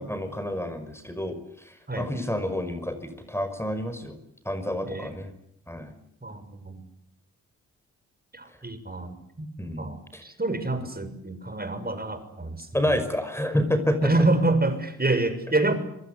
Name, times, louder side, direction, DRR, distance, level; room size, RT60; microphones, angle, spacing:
voice 1, 0.0-4.2 4.5-5.3 5.7-5.9 9.6-10.2 12.7-14.1, left 1 dB, 5° left, 10 dB, 5.5 m, -29 dB
voice 2, 6.2-6.9 8.3-9.5 9.8-12.7 14.0-15.7, right 2 dB, 25° right, 10 dB, 6.5 m, -27 dB
25.5 x 25.0 x 8.3 m, 0.76 s
hypercardioid pair, 40°, 37 cm